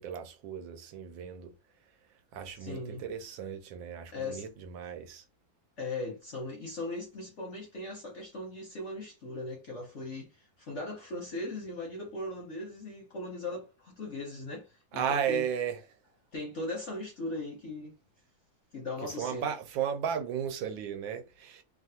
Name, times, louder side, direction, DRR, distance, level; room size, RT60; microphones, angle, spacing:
voice 1, 0.0-1.5 2.3-5.2 14.9-15.8 19.2-21.6, right 8 dB, 80° right, 1.4 m, -34 dB
voice 2, 2.5-3.0 4.1-4.4 5.8-15.5 16.3-17.9 18.7-19.5, left 2 dB, 55° left, 0.8 m, -39 dB
3.1 x 2.4 x 2.7 m
omnidirectional pair, 2.1 m